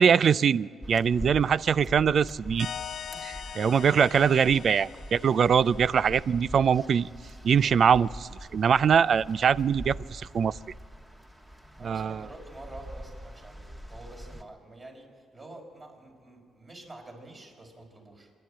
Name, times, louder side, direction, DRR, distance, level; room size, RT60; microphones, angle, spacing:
voice 1, 0.0-2.7 3.6-7.1 7.4-10.6 11.8-12.2, right 7 dB, 55° right, 19 dB, 0.4 m, -23 dB
sound 1, 0.8-14.4, equal, 15° right, 1.6 m, -44 dB
sound 2, 2.6-6.0, left 9 dB, 60° left, 0.7 m, -41 dB
voice 2, 3.1-4.1 11.8-18.3, right 2 dB, 30° right, 2 dB, 4.9 m, -47 dB
26.5 x 11.5 x 8.7 m, 2.3 s
cardioid pair, 90°, 0 cm